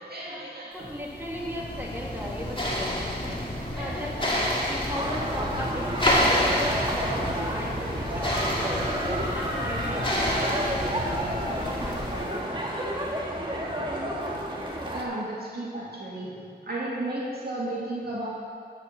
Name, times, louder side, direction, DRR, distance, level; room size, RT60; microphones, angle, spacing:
voice 1, 0.0-0.9 3.7-4.3 14.9-18.3, right 1 dB, 65° right, -6 dB, 2.4 m, -34 dB
voice 2, 0.7-8.6 9.0-11.2 11.6-13.1, equal, 10° right, -3 dB, 2.3 m, -37 dB
sound 1, 0.9-12.4, equal, 30° left, 2.0 m, -29 dB
sound 2, 4.9-15.0, equal, 30° right, 1.7 m, -31 dB
11.0 x 5.6 x 6.5 m, 2.2 s
cardioid pair, 40°, 17 cm